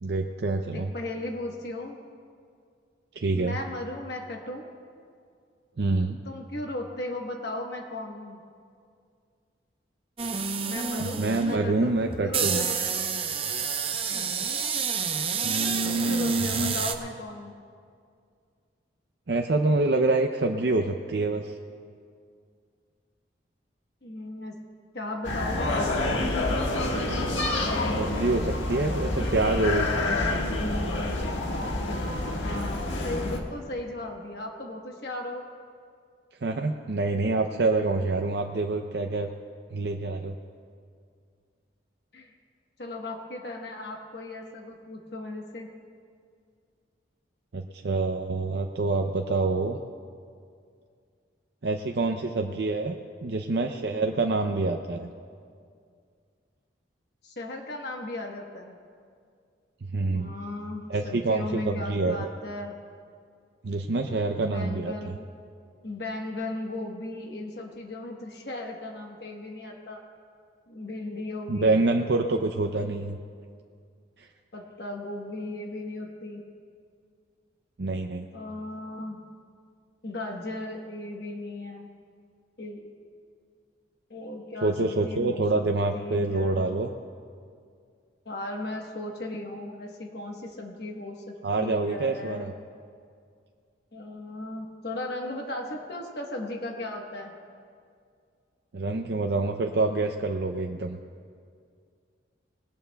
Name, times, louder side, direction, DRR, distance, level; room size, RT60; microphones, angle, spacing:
voice 1, 0.0-0.9 3.2-3.5 5.8-6.2 11.0-12.6 15.4-16.7 19.3-21.5 28.0-29.9 36.4-39.3 39.7-40.3 47.5-49.8 51.6-53.0 53.2-55.1 59.9-60.3 60.9-62.3 63.6-65.1 71.5-73.2 74.2-74.3 77.8-78.3 84.6-86.9 91.4-92.5 98.7-101.0, right 3 dB, 65° right, 3 dB, 0.6 m, -26 dB
voice 2, 0.7-2.0 3.3-4.7 6.2-8.4 10.6-12.8 15.8-17.5 24.0-24.6 24.9-26.0 32.4-35.5 42.1-42.3 42.8-45.7 57.2-58.8 60.1-62.7 64.3-65.2 65.8-70.1 70.7-71.8 74.5-76.5 78.3-79.2 80.0-81.9 82.6-82.9 84.1-85.6 85.9-86.8 88.2-92.5 93.9-97.3, left 2 dB, 60° left, 1 dB, 1.2 m, -36 dB
sound 1, 10.2-16.9, right 6 dB, 30° right, 0.7 m, -29 dB
sound 2, 25.2-33.4, left 2 dB, 90° left, 1.5 m, -28 dB
21.0 x 17.5 x 2.3 m, 2.2 s
head